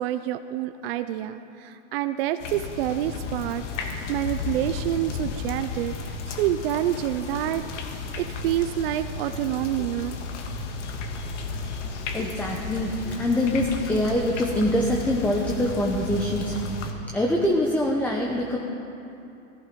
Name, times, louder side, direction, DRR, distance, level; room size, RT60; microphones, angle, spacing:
voice 1, 0.0-5.9 6.3-7.6 8.2-10.2, right 12 dB, 55° right, 10 dB, 0.6 m, -27 dB
sound 1, 2.4-16.9, left 4 dB, 75° left, 1.8 m, -33 dB
voice 2, 12.1-18.6, left 1 dB, 5° left, -1 dB, 0.8 m, -24 dB
16.5 x 14.5 x 5.2 m, 2.8 s
supercardioid pair, 150°, 36 cm